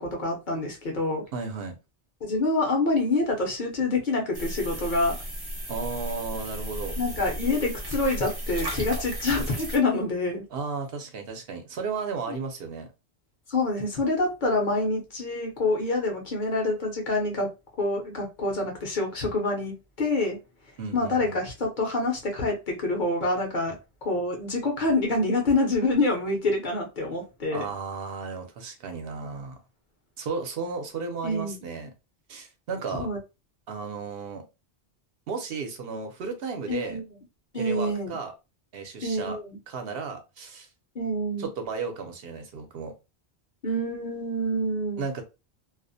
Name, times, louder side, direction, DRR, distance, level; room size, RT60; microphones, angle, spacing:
voice 1, 0.0-1.2 2.2-5.2 7.0-10.4 12.3-12.4 13.5-17.5 17.8-20.4 20.9-27.7 31.2-31.6 32.9-33.2 36.7-37.0 37.5-38.2 39.0-39.6 40.9-41.5 43.6-45.0, left 2 dB, 50° left, 0.8 m, -26 dB
voice 2, 1.3-1.8 5.7-7.0 10.5-12.9 20.8-21.4 27.5-29.6 30.2-31.9 32.3-33.1 33.7-34.4 35.3-37.0 37.5-38.3 38.7-39.4 39.7-40.7 41.4-42.9 45.0-45.2, right 5 dB, 65° right, 0.8 m, -34 dB
sound 1, 4.3-9.8, equal, 25° right, 0.6 m, -34 dB
2.4 x 2.0 x 2.6 m
omnidirectional pair, 1.1 m